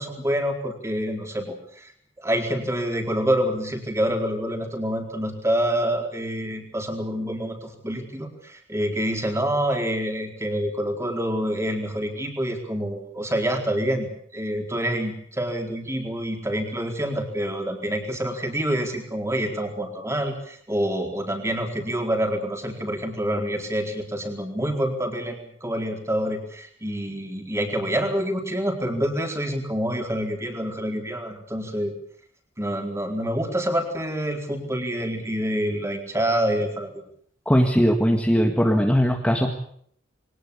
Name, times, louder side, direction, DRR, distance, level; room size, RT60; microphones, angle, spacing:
voice 1, 0.0-1.9 2.2-31.9 32.6-37.0, equal, 15° right, 3 dB, 4.3 m, -27 dB
voice 2, 37.5-39.5, equal, 5° left, 2 dB, 1.9 m, -19 dB
22.0 x 19.5 x 8.5 m, 0.63 s
head